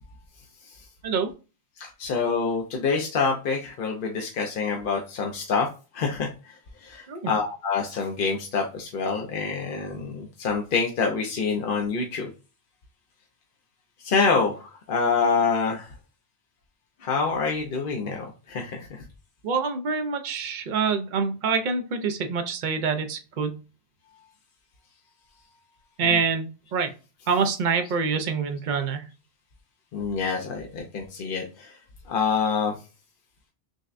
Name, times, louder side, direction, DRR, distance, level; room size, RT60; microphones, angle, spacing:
voice 1, 1.8-5.7 5.9-12.3 14.0-15.9 17.0-19.0 26.0-26.2 27.8-27.9 29.9-31.8 32.1-32.8, left 5 dB, 60° left, 1 dB, 0.8 m, -26 dB
voice 2, 19.4-23.6 26.0-26.9 27.3-29.0, right 5 dB, 55° right, 7 dB, 0.7 m, -26 dB
6.2 x 2.2 x 2.5 m, 0.32 s
omnidirectional pair, 1.1 m